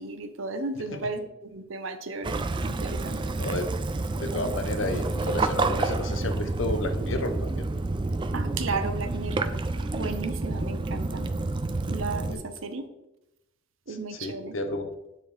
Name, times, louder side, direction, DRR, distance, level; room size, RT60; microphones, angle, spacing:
voice 1, 0.0-3.4 8.3-9.5 9.9-11.3 11.9-12.9 13.9-14.5, right 3 dB, 70° right, 8 dB, 0.8 m, -34 dB
Waves surf / Splash splatter / Trickle dribble, 2.2-12.3, right 2 dB, 25° right, 0.3 m, -29 dB
voice 2, 3.4-3.7 4.1-7.7 12.3-12.4 13.9-14.9, left 2 dB, 65° left, 7 dB, 0.8 m, -32 dB
9.6 x 4.2 x 3.3 m, 0.90 s
head